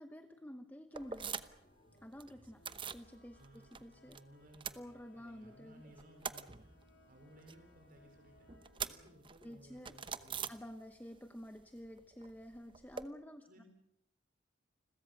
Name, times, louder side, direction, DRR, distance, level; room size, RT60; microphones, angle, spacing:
voice 1, 0.0-1.5 2.0-2.6 2.9-4.2 4.7-5.9 9.4-10.0 10.5-13.6, equal, 10° left, 8 dB, 0.9 m, -50 dB
sound 1, 0.9-10.2, left 2 dB, 65° left, 4.1 m, -68 dB
sound 2, 0.9-1.7 2.0-3.1 3.4-4.2 4.5-5.5 5.8-11.2 11.4-13.0, right 6 dB, 25° right, 0.9 m, -45 dB
sound 3, 1.5-4.5, equal, 35° left, 4.6 m, -69 dB
voice 2, 3.3-6.7 7.1-8.5 8.8-10.5 13.4-13.7, equal, 50° right, 4 dB, 4.4 m, -60 dB
29.5 x 22.0 x 6.5 m, 0.76 s
head